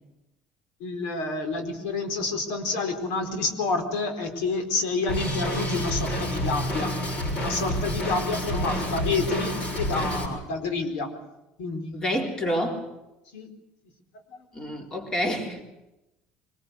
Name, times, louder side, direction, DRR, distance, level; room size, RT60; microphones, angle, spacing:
voice 1, 0.8-7.0 7.3-11.1 11.6-12.0 13.3-13.5 14.3-14.4, left 3 dB, 85° left, 6 dB, 4.5 m, -29 dB
Drum kit, 5.1-10.3, equal, 45° left, 6.9 m, -29 dB
voice 2, 11.9-12.9 14.5-15.6, equal, 20° left, 3 dB, 3.8 m, -28 dB
24.5 x 19.5 x 8.2 m, 0.95 s
cardioid pair, 130°, 3 cm